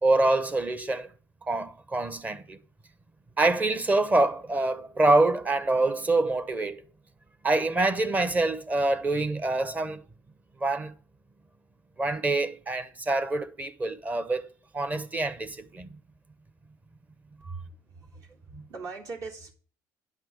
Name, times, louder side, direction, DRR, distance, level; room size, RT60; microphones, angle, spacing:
voice 1, 0.0-1.1 1.5-2.6 3.4-6.8 7.4-10.0 10.6-10.9 12.0-14.5 14.7-15.9 17.4-17.5 18.5-18.6, right 2 dB, 20° right, 0.9 m, -25 dB
voice 2, 17.4-19.5, right 4 dB, 60° right, 3.3 m, -41 dB
10.0 x 5.9 x 6.3 m
cardioid pair, 115°, 7 cm